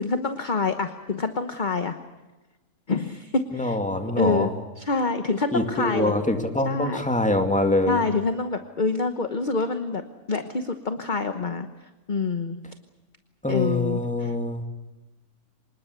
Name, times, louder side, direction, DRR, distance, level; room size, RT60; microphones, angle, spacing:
voice 1, 0.0-2.0 2.9-3.8 4.2-6.1 6.6-7.0 7.9-11.7 12.1-12.6 13.5-14.3, left 4 dB, 35° left, 8 dB, 1.1 m, -26 dB
voice 2, 3.5-4.5 5.5-8.0 13.4-14.6, left 1 dB, 5° left, 5 dB, 2.2 m, -24 dB
25.5 x 20.5 x 8.2 m, 1.1 s
omnidirectional pair, 1.5 m